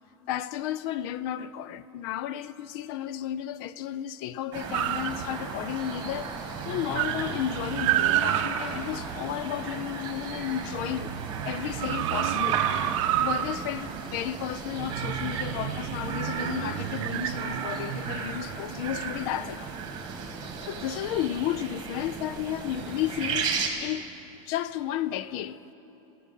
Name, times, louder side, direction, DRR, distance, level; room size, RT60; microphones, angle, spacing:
voice 1, 0.3-11.2 11.4-12.6 13.2-19.7 20.4-23.5 23.8-24.1 24.5-25.6, left 11 dB, 45° left, 0.4 m, -33 dB
sound 1, 4.5-23.7, right 5 dB, 25° right, 1.5 m, -35 dB
sound 2, 4.7-5.7 6.1-6.2 6.5-10.0 10.5-19.1, right 12 dB, 65° right, 0.7 m, -30 dB
20.5 x 8.5 x 5.4 m
supercardioid pair, 155°, 17 cm